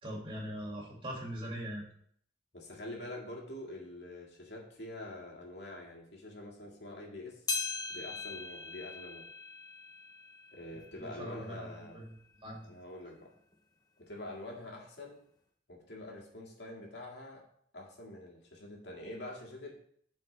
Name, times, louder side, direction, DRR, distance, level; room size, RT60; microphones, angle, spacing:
voice 1, 0.0-1.8 11.0-12.1 12.4-12.7, equal, 30° right, -2 dB, 2.3 m, -41 dB
voice 2, 2.5-7.4 7.9-9.3 10.5-12.0 12.6-13.3 14.0-15.2 15.7-17.4 17.7-19.7, left 1 dB, 80° left, -2 dB, 2.1 m, -45 dB
sound 1, 7.5-12.1 12.6-12.7 13.5-13.6 14.6-14.7, left 4 dB, 25° left, 0.8 m, -41 dB
12.0 x 4.5 x 3.3 m, 0.65 s
head